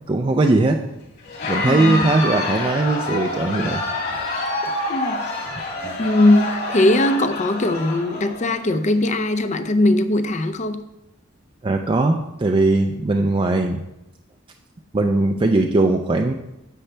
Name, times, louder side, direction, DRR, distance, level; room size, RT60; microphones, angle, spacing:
voice 1, 0.1-0.8 1.5-3.8 4.6-4.7 5.8-6.0 11.6-13.8 14.9-16.3, right 2 dB, 25° right, 0.4 m, -19 dB
Crowd, 1.2-8.7, left 2 dB, 50° left, 2.6 m, -27 dB
voice 2, 1.6-2.1 4.9-5.2 6.0-10.8, left 1 dB, 35° left, 0.6 m, -19 dB
9.9 x 7.6 x 3.3 m
head